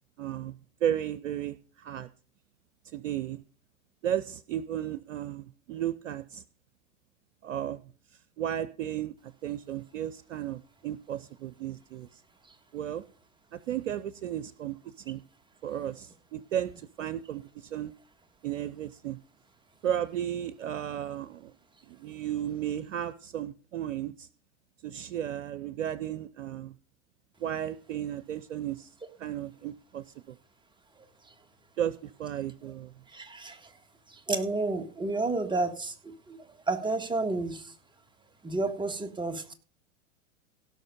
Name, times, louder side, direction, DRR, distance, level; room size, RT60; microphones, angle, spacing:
voice 1, 0.2-0.6 0.8-2.1 2.8-3.4 4.0-6.4 7.4-7.8 8.4-9.1 9.4-12.2 12.7-13.0 13.5-15.2 15.6-17.9 18.4-19.2 19.8-21.5 21.9-24.3 24.8-26.7 27.4-28.9 29.2-30.4 31.8-32.9, right 10 dB, 75° right, 16 dB, 0.7 m, -34 dB
voice 2, 33.1-33.7 34.1-36.4 36.7-37.7 38.4-39.5, right 3 dB, 10° right, 7 dB, 1.6 m, -31 dB
17.0 x 5.9 x 5.3 m, 0.39 s
hypercardioid pair, 95°, 38 cm